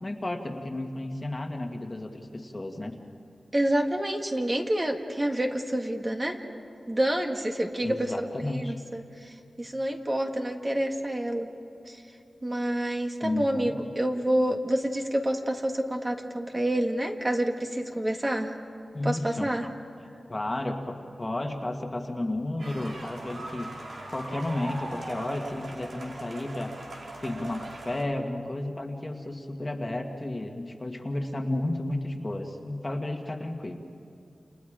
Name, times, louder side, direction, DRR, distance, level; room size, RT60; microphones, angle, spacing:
voice 1, 0.0-3.0 7.8-8.8 13.2-13.8 18.9-19.5 20.3-23.7 24.1-26.7 27.2-33.8, left 1 dB, 25° left, 3 dB, 1.8 m, -32 dB
voice 2, 3.5-6.4 6.9-11.5 11.8-12.0 12.4-18.6 19.0-19.7, right 1 dB, 25° right, 2 dB, 1.9 m, -28 dB
sound 1, 22.6-28.0, right 2 dB, 80° right, 4.9 m, -40 dB
29.5 x 29.0 x 5.1 m, 2.5 s
wide cardioid pair, 90°, 0 cm